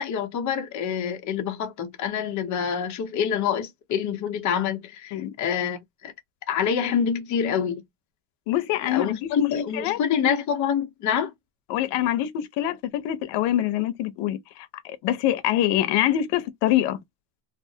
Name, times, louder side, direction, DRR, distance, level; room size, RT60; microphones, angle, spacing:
voice 1, 0.0-6.1 6.5-7.8 8.9-11.3, left 7 dB, 45° left, 0.9 m, -26 dB
voice 2, 8.5-10.0 11.7-17.0, left 13 dB, 85° left, 0.8 m, -25 dB
3.3 x 2.1 x 2.7 m
cardioid pair, 170°, 42 cm